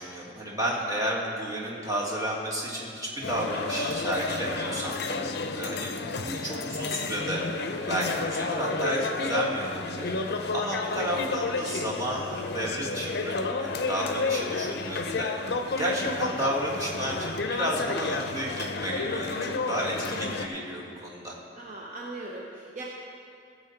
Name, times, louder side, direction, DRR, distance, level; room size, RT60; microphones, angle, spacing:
voice 1, 0.0-5.0 5.6-7.4 7.8-10.1 10.5-15.3 15.8-21.3, right 1 dB, 20° right, -4 dB, 1.8 m, -32 dB
voice 2, 1.5-1.9 5.7-6.2 10.9-11.3 21.6-22.8, right 2 dB, 45° right, -3 dB, 0.9 m, -41 dB
sound 1, 3.2-20.5, left 3 dB, 60° left, 0.6 m, -31 dB
16.0 x 7.1 x 4.4 m, 2.4 s
head